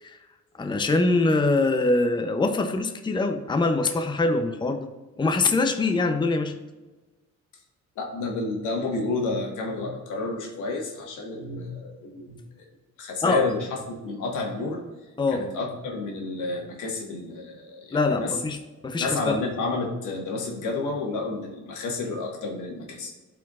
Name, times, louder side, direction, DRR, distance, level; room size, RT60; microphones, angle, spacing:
voice 1, 0.6-4.9 5.2-6.5 13.2-13.5 15.2-15.5 17.9-18.6 18.8-19.4, left 3 dB, 15° left, 6 dB, 0.6 m, -23 dB
voice 2, 8.0-12.4 13.0-14.8 15.3-18.3 19.0-23.1, left 3 dB, 85° left, 1 dB, 1.6 m, -30 dB
11.5 x 4.7 x 2.4 m, 1.2 s
cardioid pair, 90°, 30 cm